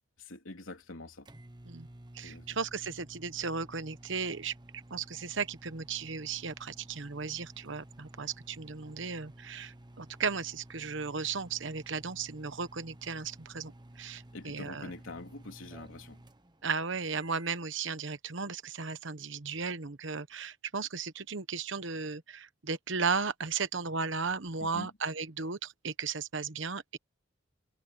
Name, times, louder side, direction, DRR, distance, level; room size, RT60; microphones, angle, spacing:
voice 1, 0.2-1.3 2.2-2.6 14.3-16.2 24.6-24.9, left 2 dB, 85° left, 3.4 m, -45 dB
sound 1, 0.8-17.6, right 1 dB, 20° right, 1.2 m, -53 dB
voice 2, 2.1-4.5 4.9-13.7 14.0-14.9 16.6-27.0, right 5 dB, 70° right, 1.1 m, -35 dB
head